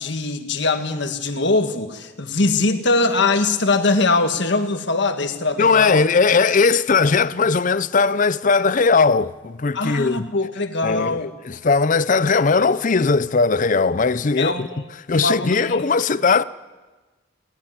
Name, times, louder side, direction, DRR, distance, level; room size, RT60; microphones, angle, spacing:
voice 1, 0.0-6.0 9.7-11.3 14.4-14.7 15.1-15.8, left 3 dB, 60° left, 1.6 m, -22 dB
voice 2, 5.6-10.3 10.8-14.7 15.1-16.4, left 4 dB, 40° left, 0.6 m, -18 dB
18.5 x 16.5 x 9.9 m
head